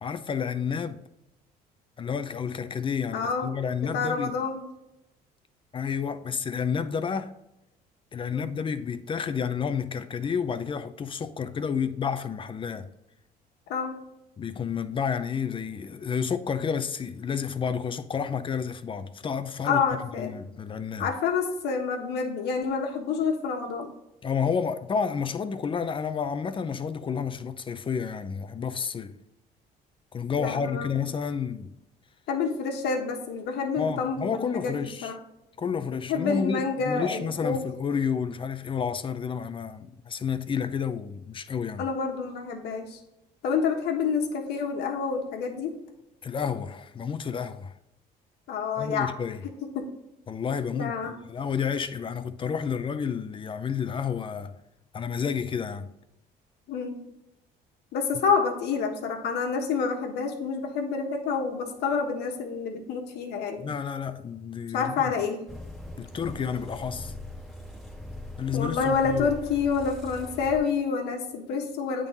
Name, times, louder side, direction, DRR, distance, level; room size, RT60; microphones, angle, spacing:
voice 1, 0.0-1.0 2.0-4.3 5.7-7.3 8.1-12.9 14.4-19.8 20.2-21.1 24.2-29.2 30.1-31.7 33.8-35.1 35.6-41.8 46.2-47.7 48.8-49.4 50.3-54.5 54.9-55.9 63.6-65.1 66.0-67.1 68.4-69.3, left 6 dB, 30° left, 0.6 m, -30 dB
voice 2, 3.1-4.7 8.3-8.5 13.7-14.0 19.6-20.3 21.0-23.9 30.4-31.0 32.3-35.2 36.1-37.6 41.8-43.0 43.4-45.7 48.5-49.1 49.6-49.9 50.7-51.1 56.7-57.0 57.9-63.6 64.7-65.5 68.5-72.1, left 5 dB, 75° left, 1.4 m, -28 dB
sound 1, 65.5-70.6, left 1 dB, ahead, 1.3 m, -41 dB
8.8 x 3.8 x 4.0 m
cardioid pair, 110°, 17 cm